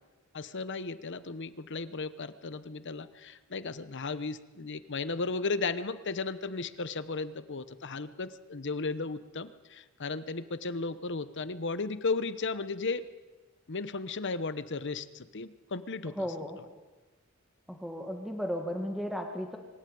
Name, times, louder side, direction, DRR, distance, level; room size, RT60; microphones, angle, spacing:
voice 1, 0.3-13.0 13.7-16.3, left 4 dB, 55° left, 13 dB, 1.0 m, -35 dB
voice 2, 16.2-16.6 17.7-19.6, equal, ahead, 3 dB, 1.8 m, -35 dB
25.0 x 13.0 x 9.4 m, 1.2 s
head